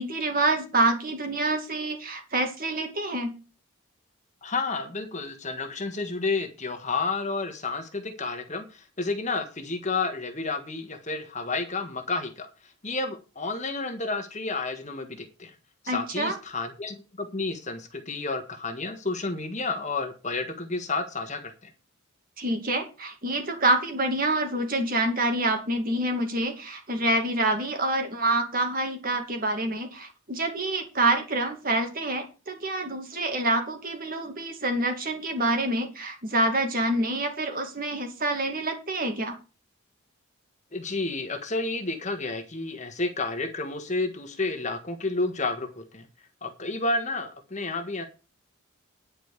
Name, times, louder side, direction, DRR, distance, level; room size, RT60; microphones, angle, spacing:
voice 1, 0.0-3.4 15.9-16.4 22.4-39.4, right 2 dB, 40° right, 5 dB, 2.4 m, -27 dB
voice 2, 4.4-12.5 12.8-15.5 15.8-21.7 40.7-46.1 46.4-48.0, left 3 dB, 35° left, 6 dB, 1.5 m, -31 dB
10.0 x 5.4 x 8.1 m, 0.32 s
head